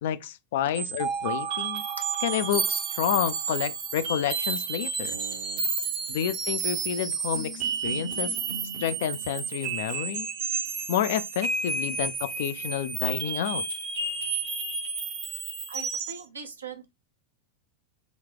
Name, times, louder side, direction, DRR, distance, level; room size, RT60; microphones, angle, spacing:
voice 1, 0.0-1.8 2.2-5.1 6.1-8.4 8.8-10.3 10.9-13.7, left 10 dB, 55° left, 0.3 m, -29 dB
sound 1, 0.8-16.2, right 5 dB, 40° right, 0.8 m, -31 dB
voice 2, 5.0-6.2 15.7-16.9, right 5 dB, 75° right, 0.7 m, -42 dB
4.0 x 2.2 x 3.3 m
figure-of-eight pair, 90°, 0 cm